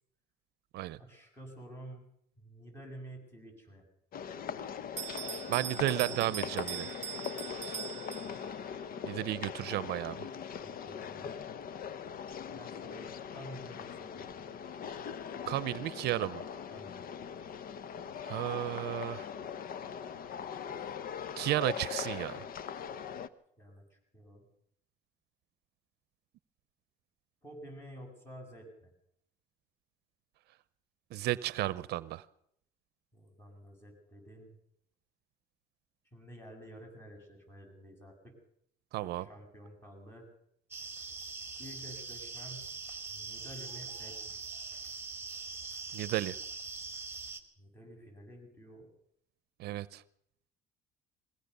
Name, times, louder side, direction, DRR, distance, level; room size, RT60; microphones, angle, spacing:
voice 1, 1.0-2.1 2.4-3.8 10.6-11.4 12.5-14.6 16.7-17.1 23.6-24.4 27.4-28.9 33.1-34.6 36.1-38.4 38.9-40.3 41.6-42.7 43.1-44.4 47.6-48.9, equal, 15° left, 1 dB, 7.8 m, -50 dB
sound 1, 4.1-23.3, left 7 dB, 60° left, 1.0 m, -41 dB
Bell, 5.0-8.7, right 9 dB, 45° right, 0.8 m, -41 dB
voice 2, 5.5-6.9 9.0-10.3 15.5-16.4 18.2-19.3 21.4-22.5 31.1-32.2 38.9-39.2 45.9-46.4 49.6-50.0, right 15 dB, 75° right, 18 dB, 0.7 m, -33 dB
sound 2, 40.7-47.4, right 4 dB, 15° right, 2.4 m, -42 dB
21.5 x 18.0 x 6.8 m, 0.71 s
cardioid pair, 110°, 17 cm